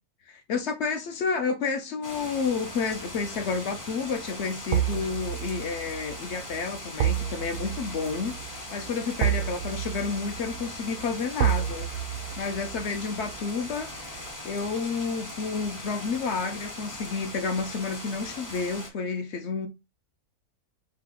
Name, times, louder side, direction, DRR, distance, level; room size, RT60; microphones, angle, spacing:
voice 1, 0.3-8.4 8.7-11.9 12.4-19.7, left 5 dB, 60° left, 0.8 m, -30 dB
sound 1, 2.0-18.9, left 1 dB, 20° left, 0.5 m, -40 dB
sound 2, 3.0-3.3 4.7-15.7 16.0-16.2, right 11 dB, 70° right, 0.8 m, -31 dB
4.8 x 2.3 x 3.6 m
omnidirectional pair, 1.6 m